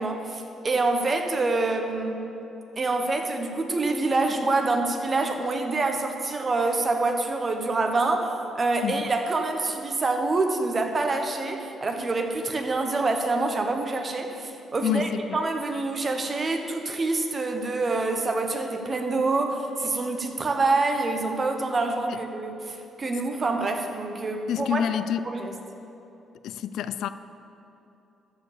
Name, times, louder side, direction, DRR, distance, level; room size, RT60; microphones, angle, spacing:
voice 1, 0.0-2.2 2.8-24.9 25.3-25.5, right 3 dB, 35° right, 5 dB, 1.2 m, -26 dB
voice 2, 14.8-15.4 22.1-22.2 24.5-25.2 26.4-27.1, left 9 dB, 80° left, 13 dB, 0.3 m, -27 dB
13.5 x 4.8 x 6.9 m, 3.0 s
cardioid pair, 90°, 0 cm